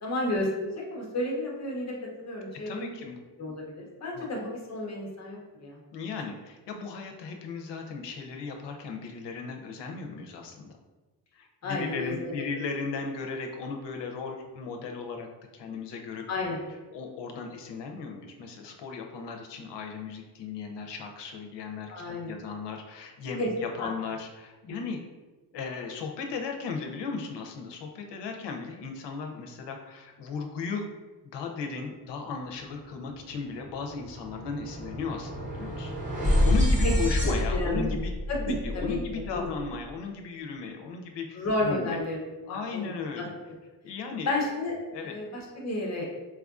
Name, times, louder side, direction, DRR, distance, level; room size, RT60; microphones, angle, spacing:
voice 1, 0.0-1.9 2.2-2.9 3.4-5.8 11.6-12.5 16.3-16.6 21.9-22.4 23.4-23.5 23.8-23.9 24.7-24.8 37.5-38.0 38.3-39.5 41.3-43.3 44.3-44.8 45.0-46.1, left 2 dB, 40° left, -1 dB, 0.7 m, -32 dB
voice 2, 2.7-3.2 4.1-4.3 5.9-10.7 11.3-15.3 15.5-16.2 16.9-25.0 25.5-30.8 31.3-35.9 36.4-38.1 38.4-42.0 42.5-43.3 43.8-44.3 44.9-45.1, left 4 dB, 90° left, 3 dB, 0.6 m, -36 dB
sound 1, 33.1-33.2 33.5-39.8, left 1 dB, 20° right, 0.8 m, -28 dB
4.5 x 2.4 x 2.3 m, 1.2 s
wide cardioid pair, 170°, 41 cm